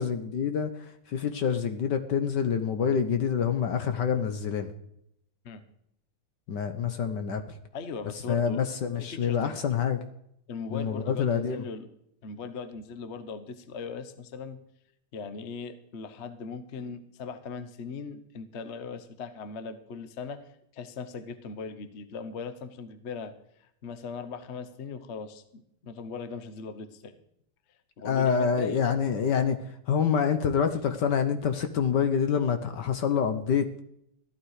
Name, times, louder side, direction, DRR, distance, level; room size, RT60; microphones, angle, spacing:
voice 1, 0.0-4.7 6.5-7.6 8.3-10.0 10.7-11.6 28.0-29.6 29.9-33.8, left 7 dB, 60° left, 8 dB, 1.3 m, -27 dB
voice 2, 7.7-8.7 9.0-9.6 10.5-11.9 12.2-14.6 15.1-23.3 23.6-27.2 28.0-28.8, left 5 dB, 45° left, 10 dB, 0.9 m, -39 dB
14.5 x 12.0 x 4.8 m, 0.75 s
omnidirectional pair, 2.4 m